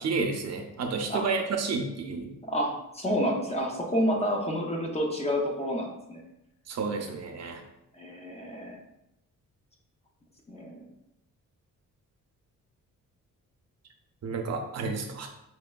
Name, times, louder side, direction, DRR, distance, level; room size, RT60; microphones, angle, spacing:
voice 1, 0.0-2.3 6.7-7.6 14.2-15.3, right 4 dB, 55° right, 4 dB, 0.5 m, -31 dB
voice 2, 2.4-6.2 7.9-8.8 10.5-10.9, equal, 20° left, 0 dB, 0.5 m, -29 dB
5.2 x 3.1 x 2.2 m, 0.86 s
wide cardioid pair, 165°, 32 cm